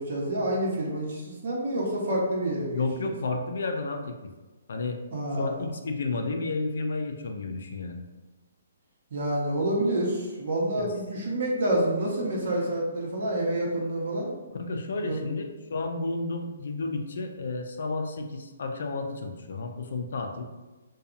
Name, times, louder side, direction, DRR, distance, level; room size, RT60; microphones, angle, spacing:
voice 1, 0.0-3.1 5.1-5.6 9.1-14.3 15.0-15.3, right 1 dB, 60° right, -3 dB, 0.8 m, -28 dB
voice 2, 2.7-4.2 4.7-5.0 5.4-8.0 10.8-10.9 14.6-20.5, left 3 dB, 70° left, 4 dB, 0.4 m, -32 dB
2.7 x 2.2 x 2.5 m, 1.2 s
hypercardioid pair, 150°, 0 cm